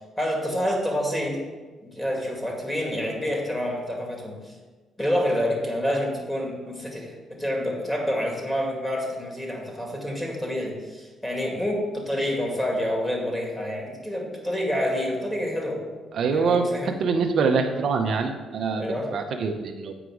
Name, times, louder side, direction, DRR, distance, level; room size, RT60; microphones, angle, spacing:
voice 1, 0.2-1.4 1.8-4.5 5.0-15.9 16.3-16.9 18.8-19.1, equal, 10° left, 0 dB, 2.1 m, -28 dB
voice 2, 16.1-18.8 19.1-19.9, right 4 dB, 60° right, 4 dB, 0.7 m, -24 dB
7.9 x 5.0 x 4.8 m, 1.3 s
cardioid pair, 90°, 0 cm